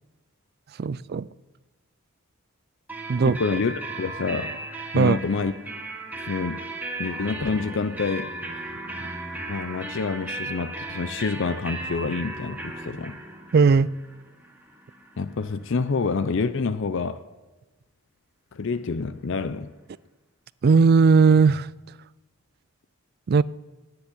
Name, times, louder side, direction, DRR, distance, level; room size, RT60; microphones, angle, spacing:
voice 1, 0.8-1.3 3.1-3.4 4.9-5.2 13.5-13.9 20.6-21.7 23.3-23.4, right 5 dB, 45° right, 0.3 m, -17 dB
sound 1, 2.9-16.5, right 2 dB, 10° right, 1.3 m, -36 dB
voice 2, 3.2-4.6 4.9-5.5 6.2-6.7 7.0-8.3 9.5-13.2 15.2-17.2 18.5-19.7, left 4 dB, 60° left, 0.5 m, -27 dB
10.0 x 9.9 x 9.7 m
head